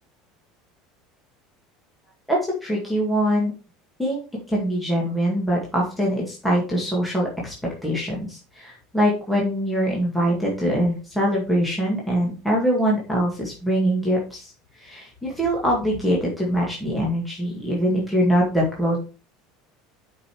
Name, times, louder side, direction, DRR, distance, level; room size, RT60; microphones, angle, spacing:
voice 1, 2.3-3.5 4.0-4.2 4.5-7.5 7.8-14.5 14.8-19.0, equal, 5° left, -4 dB, 2.0 m, -23 dB
7.6 x 5.5 x 4.7 m, 0.35 s
cardioid pair, 165°, 0 cm